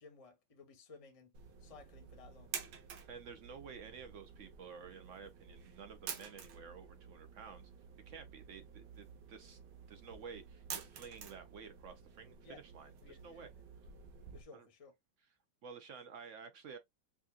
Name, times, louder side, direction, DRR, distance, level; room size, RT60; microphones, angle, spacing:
voice 1, 0.0-1.3 1.6-2.6 12.4-12.6 13.0-13.5 14.3-14.9, left 4 dB, 30° left, 0.7 m, -57 dB
sound 1, 1.3-14.4, right 7 dB, 90° right, 1.5 m, -50 dB
voice 2, 3.1-7.7 8.1-9.6 9.9-12.4 12.7-13.5 14.5-14.7 15.6-16.8, right 6 dB, 65° right, 0.7 m, -52 dB
4.9 x 2.6 x 2.3 m
omnidirectional pair, 1.9 m